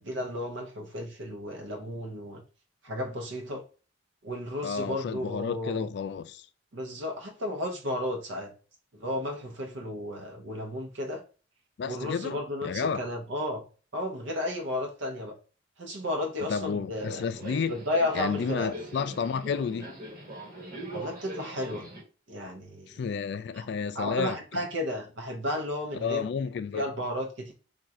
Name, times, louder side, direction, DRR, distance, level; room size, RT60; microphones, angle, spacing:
voice 1, 0.0-2.4 2.8-3.6 4.2-5.9 6.7-8.5 8.9-11.2 11.8-13.6 13.9-15.3 15.8-17.2 17.7-18.7 20.9-21.8 22.3-22.9 23.5-23.7 23.9-26.3 26.7-27.5, left 1 dB, 75° right, 0.7 m, -33 dB
voice 2, 4.6-6.5 11.8-13.0 16.5-17.8 18.1-19.9 22.9-24.4 26.0-26.9, left 6 dB, 60° left, 0.3 m, -31 dB
Subway metro underground, 17.0-22.0, right 1 dB, 45° right, 1.3 m, -41 dB
3.7 x 2.4 x 4.2 m
head